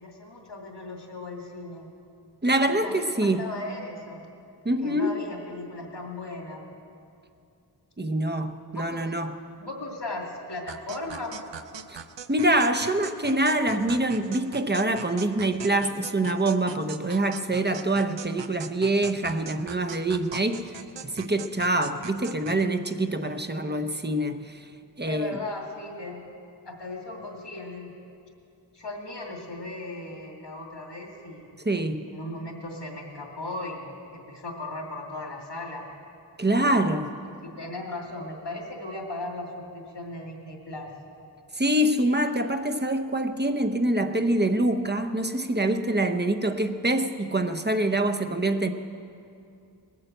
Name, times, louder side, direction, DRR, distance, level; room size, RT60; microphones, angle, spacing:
voice 1, 0.0-1.9 2.6-4.3 4.8-6.6 8.7-9.0 9.6-11.4 23.5-23.8 25.1-26.2 26.6-27.9 28.7-31.6 32.1-35.9 36.9-37.0 37.6-40.9, left 2 dB, 75° left, 0 dB, 2.5 m, -37 dB
voice 2, 2.4-3.4 4.6-5.2 8.0-9.4 11.9-12.0 12.3-20.7 21.1-24.6 25.0-25.4 31.6-32.1 36.4-37.1 41.6-48.7, right 1 dB, 25° right, 8 dB, 0.8 m, -25 dB
sound 1, 10.7-22.6, right 7 dB, 80° right, 0.7 m, -41 dB
19.5 x 8.6 x 7.9 m, 2.6 s
wide cardioid pair, 60°, 43 cm